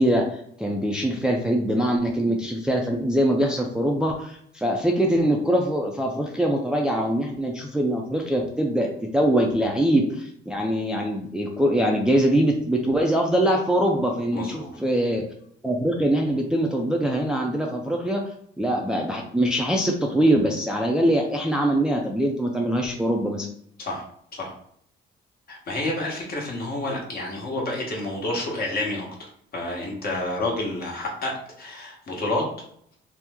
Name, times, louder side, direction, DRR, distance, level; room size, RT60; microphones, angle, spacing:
voice 1, 0.0-8.9 9.1-15.2 15.6-18.3 18.6-23.5, right 1 dB, 5° right, 0 dB, 0.4 m, -23 dB
voice 2, 14.3-14.7 23.8-24.0 24.3-24.5 25.5-32.4, left 2 dB, 50° left, -2 dB, 1.1 m, -29 dB
2.9 x 2.1 x 3.5 m, 0.68 s
cardioid pair, 90°, 20 cm